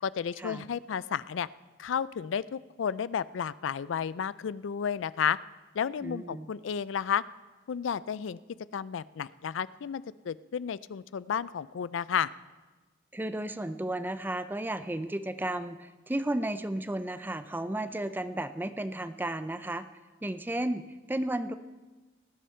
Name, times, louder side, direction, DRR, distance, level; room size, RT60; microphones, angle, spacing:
voice 1, 0.0-1.5 1.8-5.4 5.7-7.2 7.7-8.4 8.7-12.3, left 7 dB, 85° left, 18 dB, 0.4 m, -32 dB
voice 2, 6.0-6.5 13.1-19.9 20.2-20.8 21.1-21.5, right 1 dB, 10° right, 11 dB, 0.5 m, -33 dB
18.5 x 10.0 x 4.4 m, 1.2 s
head